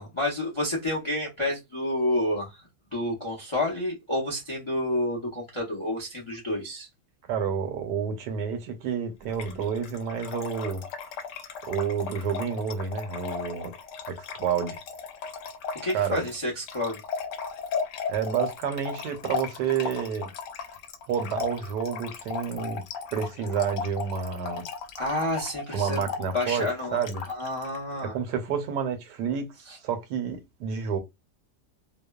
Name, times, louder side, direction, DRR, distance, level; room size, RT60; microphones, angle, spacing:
voice 1, 0.0-2.6 2.9-6.9 15.8-17.0 25.0-26.0 26.3-27.0 27.3-28.2 29.7-29.8, left 1 dB, 45° left, 0.3 m, -29 dB
voice 2, 7.2-10.8 11.7-13.7 14.1-14.8 15.9-16.3 18.1-20.3 21.1-22.8 23.1-24.7 25.7-27.2 28.0-29.5 29.8-31.0, right 7 dB, 75° right, 1.2 m, -29 dB
Trickle dribble / Fill (with liquid), 9.3-27.8, left 5 dB, 80° left, 1.2 m, -36 dB
2.9 x 2.1 x 2.2 m
omnidirectional pair, 1.8 m